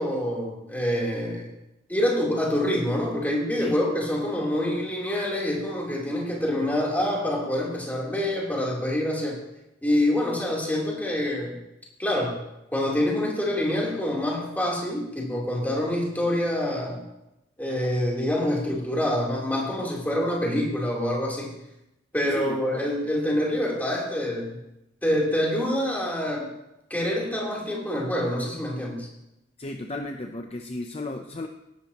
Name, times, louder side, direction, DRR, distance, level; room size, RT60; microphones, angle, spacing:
voice 1, 0.0-1.5 1.9-9.4 9.8-11.6 12.0-12.4 12.7-17.0 17.6-21.5 22.1-24.6 25.0-26.5 26.9-29.1, left 1 dB, 10° left, -4 dB, 3.5 m, -26 dB
voice 2, 22.3-22.9 29.6-31.5, left 2 dB, 30° left, 5 dB, 0.7 m, -34 dB
17.5 x 12.5 x 3.0 m, 0.90 s
head